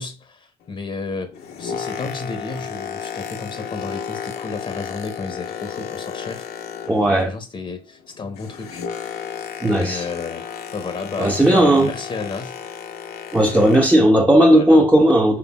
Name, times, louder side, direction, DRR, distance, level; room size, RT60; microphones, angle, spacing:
voice 1, 0.0-6.5 7.1-8.8 9.7-12.6 14.5-14.9, left 4 dB, 35° left, 0.8 m, -32 dB
Boat Water vehicle, 1.3-7.3 7.6-14.0 14.7-14.8, left 8 dB, 70° left, 0.8 m, -33 dB
voice 2, 6.9-7.3 9.6-10.1 11.2-11.9 13.3-15.4, right 1 dB, 10° right, 0.7 m, -15 dB
5.8 x 3.3 x 2.2 m
supercardioid pair, 70°, 17 cm